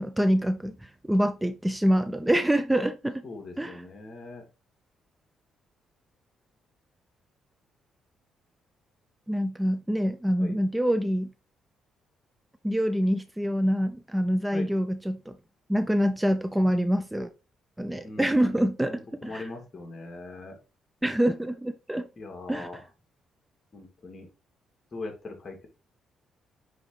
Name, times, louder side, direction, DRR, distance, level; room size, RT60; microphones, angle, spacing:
voice 1, 0.0-3.2 3.6-3.8 9.3-11.3 12.6-15.4 15.7-17.3 17.8-19.5 21.0-22.1 22.5-22.7, equal, 10° right, 0.5 m, -26 dB
voice 2, 3.2-4.5 10.4-10.6 14.5-14.8 18.0-20.6 22.2-22.9 23.7-24.3 24.9-25.7, left 2 dB, 40° left, 2.4 m, -41 dB
9.4 x 3.6 x 3.3 m
cardioid pair, 90°, 0 cm